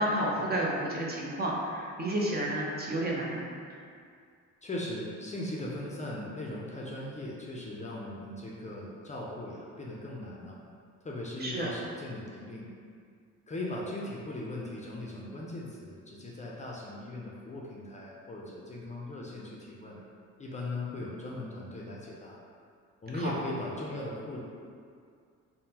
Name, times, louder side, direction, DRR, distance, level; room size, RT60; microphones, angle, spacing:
voice 1, 0.0-3.4 3.7-3.8 11.4-11.7 23.1-23.3, right 1 dB, 35° right, -3 dB, 0.5 m, -31 dB
voice 2, 4.6-10.6 11.0-12.7 13.5-20.0 20.4-22.4 23.0-24.4, left 1 dB, 25° left, -4 dB, 0.4 m, -39 dB
3.5 x 2.1 x 2.8 m, 2.2 s
cardioid pair, 90°, 30 cm